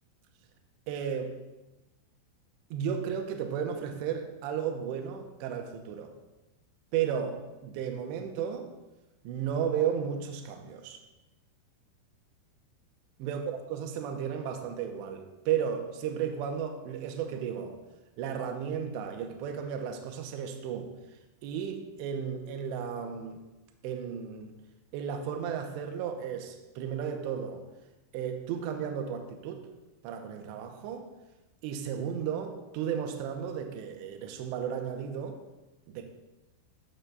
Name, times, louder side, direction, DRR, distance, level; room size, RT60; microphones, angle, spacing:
voice 1, 0.9-1.3 2.7-6.1 6.9-8.7 9.2-11.0 13.2-17.8 18.2-20.9 21.4-23.4 23.8-24.6 24.9-27.6 28.1-29.7 30.0-31.1 31.6-35.4 35.9-36.0, right 8 dB, 90° right, 4 dB, 2.6 m, -34 dB
16.5 x 6.7 x 2.3 m, 1.0 s
omnidirectional pair, 5.9 m